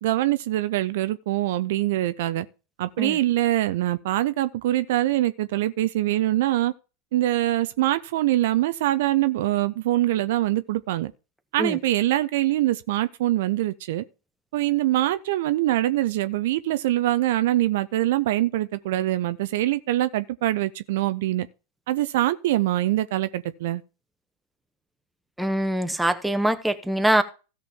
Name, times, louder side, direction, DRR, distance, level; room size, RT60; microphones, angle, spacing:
voice 1, 0.0-2.5 2.8-6.7 7.1-11.1 11.5-14.0 14.5-21.5 21.9-23.8, right 15 dB, 55° right, 0.5 m, -24 dB
voice 2, 25.4-27.2, right 1 dB, ahead, 1.0 m, -23 dB
16.5 x 5.9 x 3.5 m
figure-of-eight pair, 90°, 0 cm